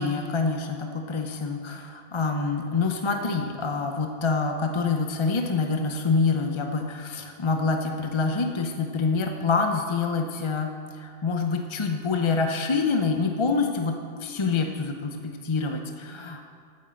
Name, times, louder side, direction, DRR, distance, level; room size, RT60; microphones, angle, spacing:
voice 1, 0.0-16.4, left 4 dB, 35° left, 4 dB, 0.5 m, -26 dB
9.2 x 8.6 x 7.5 m, 2.3 s
omnidirectional pair, 1.2 m